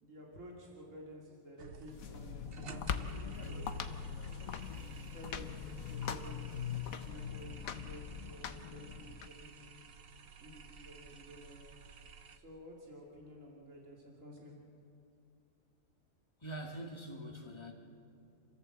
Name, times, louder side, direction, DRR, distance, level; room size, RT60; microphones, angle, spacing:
voice 1, 0.0-3.9 4.7-9.8 10.4-11.6 12.3-14.6, equal, 65° right, -2 dB, 2.9 m, -53 dB
sound 1, 1.6-12.4, right 5 dB, 50° right, 1.0 m, -54 dB
sound 2, 1.8-9.3, left 7 dB, 75° left, 1.3 m, -41 dB
voice 2, 16.4-17.7, right 1 dB, 20° left, 1 dB, 2.1 m, -44 dB
28.0 x 14.5 x 7.7 m, 2.6 s
omnidirectional pair, 1.5 m